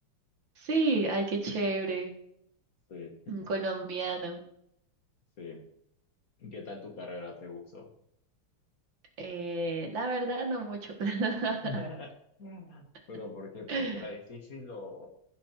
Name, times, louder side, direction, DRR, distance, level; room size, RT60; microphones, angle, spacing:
voice 1, 0.6-2.1 3.3-4.4 9.2-11.6 13.7-14.1, right 3 dB, 60° right, 3 dB, 2.3 m, -31 dB
voice 2, 2.9-3.5 5.4-5.6 6.4-7.9 11.6-12.1 12.4-15.1, left 3 dB, 45° left, 2 dB, 1.9 m, -42 dB
15.5 x 5.2 x 4.5 m, 0.72 s
omnidirectional pair, 2.4 m